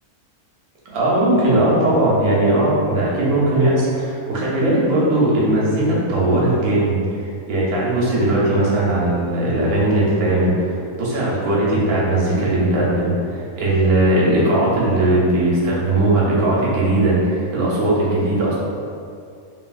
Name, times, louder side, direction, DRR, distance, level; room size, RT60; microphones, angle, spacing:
voice 1, 0.9-7.0 7.5-18.5, right 1 dB, 90° right, -6 dB, 1.2 m, -18 dB
2.9 x 2.8 x 2.3 m, 2.4 s
omnidirectional pair, 1.5 m